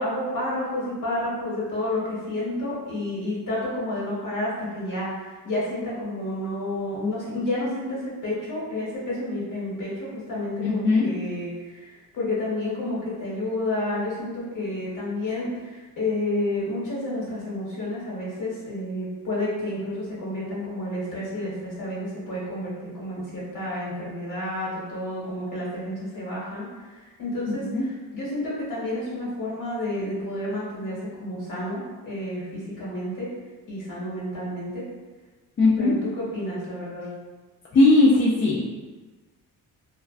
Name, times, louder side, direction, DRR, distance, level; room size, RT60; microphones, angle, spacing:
voice 1, 0.0-26.7 27.0-33.3 33.7-34.8 35.8-37.1, left 1 dB, 50° left, -7 dB, 1.3 m, -30 dB
voice 2, 10.6-11.1 27.5-27.8 35.6-36.0 37.7-38.6, left 2 dB, 30° left, -7 dB, 0.4 m, -19 dB
2.4 x 2.1 x 2.4 m, 1.3 s
cardioid pair, 95°, 39 cm